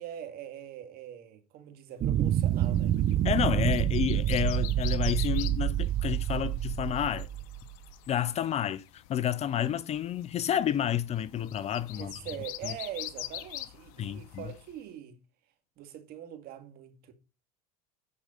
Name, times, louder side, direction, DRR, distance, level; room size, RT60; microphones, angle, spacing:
voice 1, 0.0-3.0 12.0-15.2 15.8-17.1, right 11 dB, 55° right, 1.9 m, -43 dB
sound 1, 2.0-7.8, right 12 dB, 35° right, 0.7 m, -27 dB
sound 2, 2.3-14.8, left 15 dB, 70° left, 0.8 m, -45 dB
voice 2, 3.2-7.3 8.1-12.1 12.6-12.7 14.0-14.4, left 10 dB, 35° left, 0.5 m, -30 dB
10.0 x 4.8 x 5.5 m
supercardioid pair, 100°, 20 cm